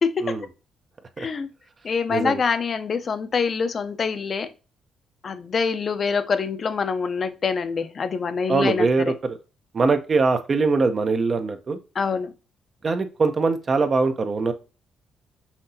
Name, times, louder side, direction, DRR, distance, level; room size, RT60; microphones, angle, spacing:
voice 1, 0.0-0.4 1.2-1.5 1.8-4.5 5.2-8.9 12.0-12.3, left 5 dB, 45° left, 0.6 m, -25 dB
voice 2, 2.1-2.4 8.5-9.4 9.7-11.8 12.8-14.5, right 4 dB, 40° right, 0.6 m, -22 dB
5.8 x 2.8 x 2.7 m
cardioid pair, 90°, 0 cm